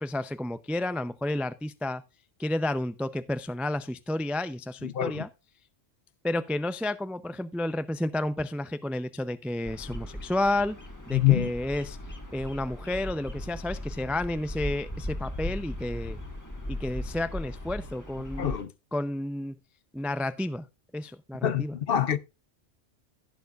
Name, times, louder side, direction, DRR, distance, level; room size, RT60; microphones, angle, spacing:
voice 1, 0.0-2.0 2.4-5.3 6.2-10.8 11.1-12.0 12.3-16.2 16.7-18.6 18.9-19.6 19.9-20.7 20.9-21.7, left 1 dB, ahead, 0.3 m, -31 dB
voice 2, 4.8-5.2 11.1-11.5 18.4-18.7 21.4-22.2, left 12 dB, 55° left, 0.9 m, -25 dB
Bird vocalization bird call bird song, 9.6-18.6, left 1 dB, 15° left, 1.6 m, -38 dB
16.0 x 7.1 x 2.4 m
omnidirectional pair, 1.2 m